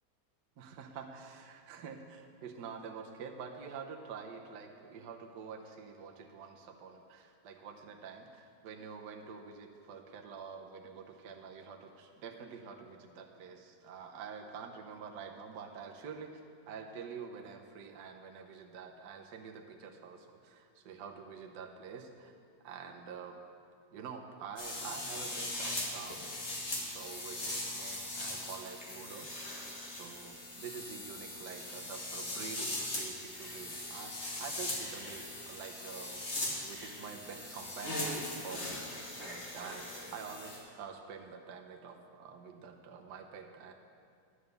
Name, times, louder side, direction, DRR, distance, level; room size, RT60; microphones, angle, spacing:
voice 1, 0.6-22.3 22.6-23.4 23.9-26.2 26.8-36.2 36.6-38.8 39.1-43.7, right 6 dB, 65° right, 2 dB, 1.3 m, -47 dB
sound 1, 24.6-40.6, left 1 dB, 35° left, 1.9 m, -40 dB
11.0 x 8.2 x 6.5 m, 2.3 s
omnidirectional pair, 2.1 m